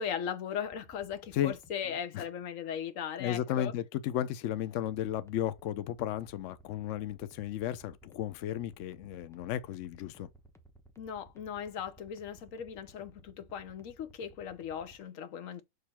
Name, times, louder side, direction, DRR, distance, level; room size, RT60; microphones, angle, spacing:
voice 1, 0.0-3.7 11.0-15.6, left 8 dB, 55° left, 1.0 m, -38 dB
sound 1, 0.6-1.7 4.9-15.0, right 2 dB, 5° left, 0.4 m, -58 dB
voice 2, 3.2-10.3, left 11 dB, 85° left, 0.6 m, -34 dB
6.6 x 3.3 x 4.3 m
omnidirectional pair, 1.9 m